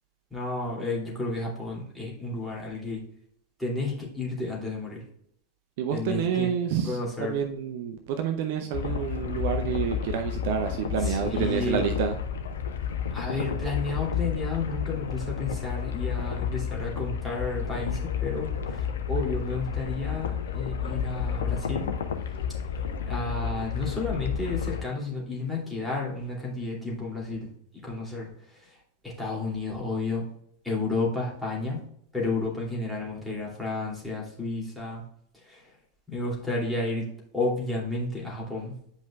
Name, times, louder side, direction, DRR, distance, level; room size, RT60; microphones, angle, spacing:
voice 1, 0.3-3.0 3.6-5.0 5.9-6.5 6.8-7.3 11.0-11.8 13.1-21.9 23.1-27.5 27.8-28.8 29.0-30.3 30.6-31.8 32.1-35.0 35.4-35.6 36.1-37.1 37.3-38.7, left 3 dB, ahead, -5 dB, 2.6 m, -32 dB
voice 2, 5.8-12.2, right 8 dB, 50° right, 6 dB, 0.6 m, -28 dB
sound 1, 8.7-24.8, left 7 dB, 60° left, 0.7 m, -31 dB
9.2 x 5.2 x 2.3 m, 0.69 s
figure-of-eight pair, 90°, 0 cm